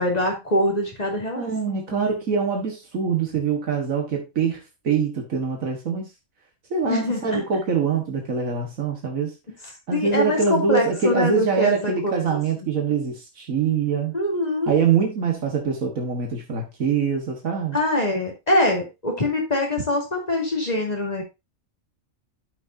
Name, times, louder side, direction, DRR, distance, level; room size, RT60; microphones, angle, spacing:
voice 1, 0.0-2.0 6.8-7.4 9.9-12.2 14.1-14.8 17.7-21.2, left 1 dB, 30° left, 3.2 m, -24 dB
voice 2, 1.4-6.1 6.7-9.3 9.9-14.1 14.7-17.8, right 6 dB, 75° right, 1.9 m, -24 dB
11.5 x 6.1 x 2.7 m
omnidirectional pair, 1.4 m